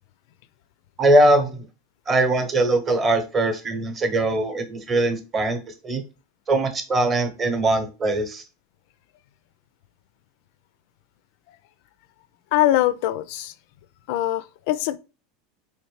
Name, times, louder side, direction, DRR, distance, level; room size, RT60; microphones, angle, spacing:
voice 1, 1.0-1.7 2.1-6.0 6.5-8.4, right 1 dB, 20° right, 0.8 m, -21 dB
voice 2, 12.5-13.5 14.1-15.0, left 14 dB, 65° left, 0.3 m, -22 dB
4.4 x 3.0 x 3.2 m
supercardioid pair, 150°, 0 cm